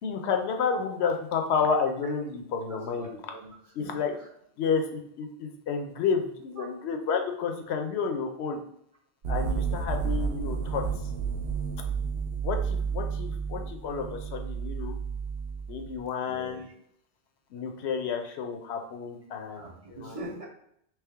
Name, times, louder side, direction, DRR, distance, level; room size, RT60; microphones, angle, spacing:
voice 1, 0.0-3.1 3.8-4.2 4.6-8.6 9.3-10.8 12.4-15.0 15.7-16.7 17.5-20.2, left 6 dB, 75° left, 4 dB, 0.8 m, -30 dB
voice 2, 2.7-4.3 6.6-6.7 16.3-16.7 19.6-20.5, right 1 dB, 40° right, -1 dB, 0.6 m, -43 dB
sound 1, 9.2-16.0, right 6 dB, 70° right, 0.8 m, -31 dB
3.5 x 3.0 x 3.4 m, 0.71 s
omnidirectional pair, 1.2 m